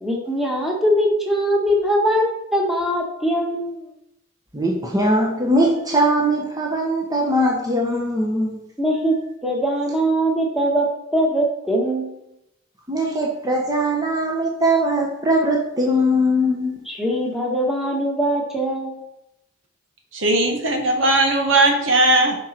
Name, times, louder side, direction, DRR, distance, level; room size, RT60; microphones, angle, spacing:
voice 1, 0.0-3.9 8.8-9.2 9.4-10.9 11.1-12.1 16.9-19.0, equal, ahead, -1 dB, 1.7 m, -21 dB
voice 2, 4.5-8.6 12.9-16.8, equal, 20° right, -1 dB, 1.2 m, -20 dB
voice 3, 20.1-22.4, right 2 dB, 70° right, 2 dB, 1.6 m, -18 dB
10.5 x 5.3 x 4.5 m, 0.83 s
head